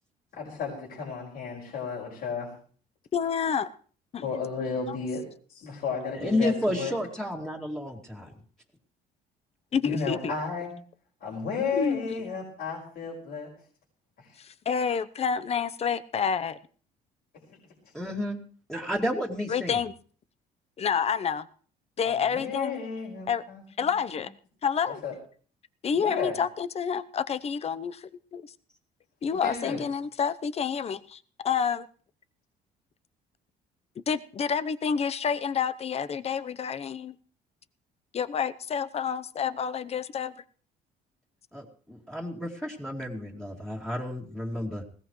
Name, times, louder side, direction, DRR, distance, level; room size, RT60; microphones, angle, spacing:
voice 1, 0.3-2.5 4.2-5.2 5.5-6.9 9.8-10.7 11.2-13.5 14.2-14.3 17.5-17.6 22.0-23.9 25.0-25.1 25.9-26.4 29.3-29.8, left 5 dB, 65° left, -3 dB, 5.7 m, -33 dB
voice 2, 3.1-3.7 4.1-4.3 4.9-5.0 9.7-10.3 11.7-12.2 14.4-16.6 19.5-19.9 20.8-21.5 22.0-22.8 23.3-23.4 23.8-24.3 24.6-25.0 25.8-28.5 29.2-31.9 34.1-37.2 38.1-40.3, left 7 dB, 40° left, 13 dB, 0.8 m, -29 dB
voice 3, 6.2-8.3 17.9-18.4 18.7-19.7 41.5-44.8, left 1 dB, 5° left, -2 dB, 2.5 m, -31 dB
20.0 x 17.5 x 3.2 m, 0.44 s
cardioid pair, 110°, 17 cm